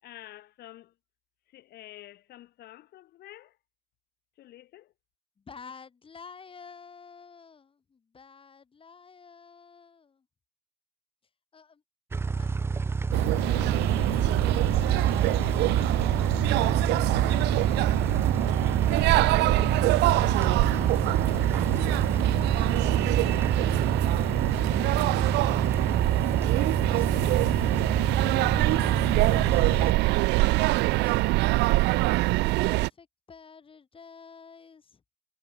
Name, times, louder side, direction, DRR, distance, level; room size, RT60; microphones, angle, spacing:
voice 1, 0.0-0.9 1.5-3.6 4.4-4.9, left 14 dB, 70° left, 6.5 m, -48 dB
voice 2, 5.4-10.3 11.5-11.8 12.3-12.6 13.2-15.9 16.3-18.9 19.6-25.2 26.6-32.1 32.6-35.0, left 5 dB, 30° left, 7.2 m, -52 dB
sound 1, 12.1-29.9, right 4 dB, 15° right, 0.3 m, -29 dB
sound 2, 13.1-32.9, right 21 dB, 90° right, 0.8 m, -24 dB
cardioid pair, 110°, 17 cm